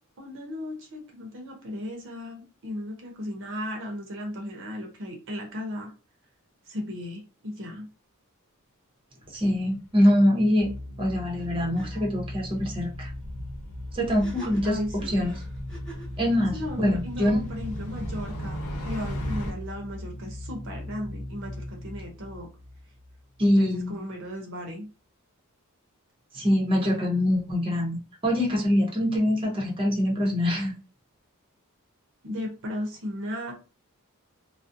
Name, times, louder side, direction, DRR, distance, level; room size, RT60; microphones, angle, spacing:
voice 1, 0.2-5.9 6.7-7.9 14.6-15.2 16.5-22.5 23.4-24.9 32.2-33.5, left 1 dB, 60° right, 1 dB, 0.7 m, -36 dB
sound 1, 9.2-9.8 10.1-10.2 12.2-19.5, equal, 85° left, 0.8 m, -38 dB
voice 2, 9.3-10.7 11.0-13.1 13.9-14.8 15.1-15.4 16.2-17.5 23.4-24.0 26.3-28.0 28.2-30.7, left 1 dB, 25° right, -1 dB, 0.7 m, -24 dB
sound 2, 10.6-23.9, left 1 dB, 50° left, 0.7 m, -39 dB
sound 3, 11.4-11.5 11.7-11.9 14.1-16.2, right 2 dB, 5° left, 1.1 m, -45 dB
2.4 x 2.0 x 2.5 m, 0.33 s
head